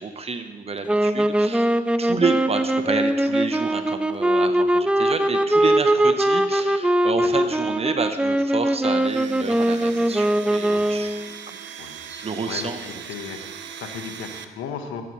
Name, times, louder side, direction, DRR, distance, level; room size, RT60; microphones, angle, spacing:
voice 1, 0.0-1.7 2.0-11.6 12.1-12.8, right 4 dB, 30° right, 8 dB, 0.8 m, -29 dB
sound 1, 0.9-11.3, right 1 dB, 5° right, 0.3 m, -21 dB
Domestic sounds home sounds, 8.9-14.4, right 8 dB, 65° right, 0.7 m, -39 dB
voice 2, 12.4-15.0, left 6 dB, 90° left, 6 dB, 1.0 m, -36 dB
13.0 x 8.1 x 3.0 m, 1.3 s
cardioid pair, 90°, 20 cm